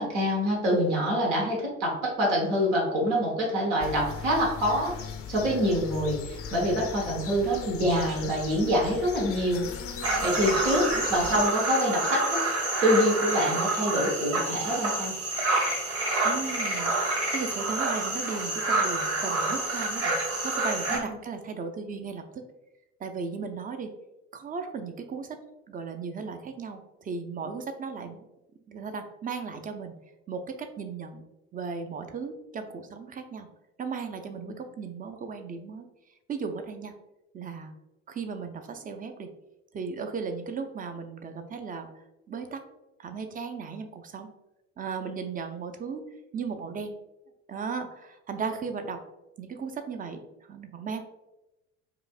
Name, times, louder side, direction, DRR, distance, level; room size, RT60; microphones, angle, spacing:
voice 1, 0.0-4.9 5.3-9.6 10.2-12.4 12.8-15.1 20.9-21.0, equal, 75° right, -2 dB, 1.3 m, -26 dB
sound 1, 3.8-11.5, left 7 dB, 40° left, 0.5 m, -38 dB
sound 2, 10.0-21.0, right 2 dB, 40° right, 1.4 m, -28 dB
voice 2, 16.2-20.2 20.4-22.4 23.0-23.9 24.3-25.4 25.7-28.2 28.7-29.9 30.3-31.2 31.5-33.5 33.8-35.9 36.3-36.9 37.3-37.7 38.1-39.3 39.7-41.9 42.3-42.6 43.0-44.3 44.8-46.0 46.3-46.9 47.5-49.0 49.4-50.2 50.5-51.0, right 5 dB, 25° right, 6 dB, 0.5 m, -36 dB
4.8 x 2.6 x 2.4 m, 0.97 s
figure-of-eight pair, 60°, 37 cm